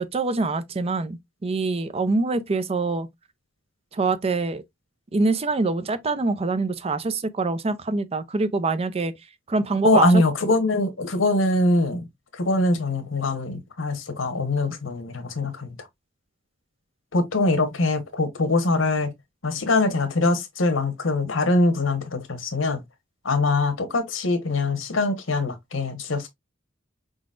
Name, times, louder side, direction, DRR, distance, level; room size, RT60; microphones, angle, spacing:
voice 1, 0.1-3.1 3.9-4.6 5.1-9.1 9.5-10.2, right 3 dB, 30° right, 0.5 m, -24 dB
voice 2, 9.8-12.0 12.4-15.7 17.1-19.1 19.4-22.8 23.2-26.3, left 2 dB, 85° left, 1.1 m, -23 dB
4.8 x 3.9 x 2.4 m
head